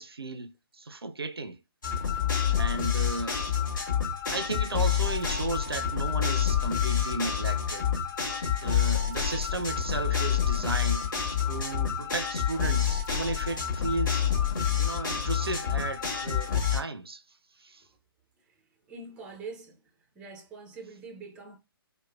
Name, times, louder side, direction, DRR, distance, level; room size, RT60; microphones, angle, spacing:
voice 1, 0.0-1.6 2.5-3.5 4.3-7.9 8.6-11.1 11.5-14.3 14.7-17.2 17.6-17.8, right 3 dB, 80° right, 0.4 m, -34 dB
sound 1, 1.8-16.8, left 8 dB, 55° left, 1.3 m, -28 dB
voice 2, 18.9-19.8 20.2-21.6, right 4 dB, 10° right, 0.4 m, -43 dB
3.1 x 2.1 x 2.3 m
figure-of-eight pair, 135°, 13 cm